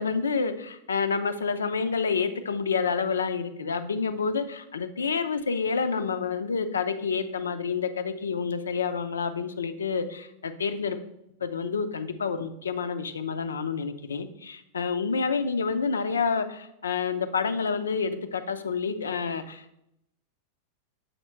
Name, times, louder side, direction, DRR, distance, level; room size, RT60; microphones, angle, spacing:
voice 1, 0.0-11.0 11.4-19.8, left 5 dB, 70° left, 10 dB, 0.5 m, -28 dB
6.5 x 4.2 x 4.5 m, 0.80 s
figure-of-eight pair, 90°, 0 cm